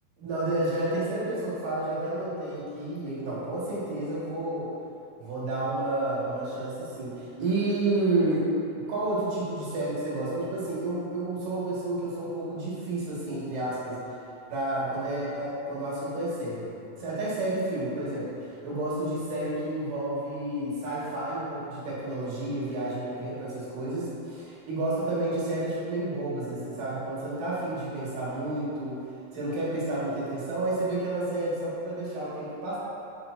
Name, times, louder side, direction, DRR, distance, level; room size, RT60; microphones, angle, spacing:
voice 1, 0.2-4.7 5.2-8.5 8.9-14.0 14.5-29.0 29.3-32.8, right 2 dB, 70° right, -8 dB, 3.2 m, -30 dB
7.2 x 7.2 x 2.6 m, 2.7 s
omnidirectional pair, 4.1 m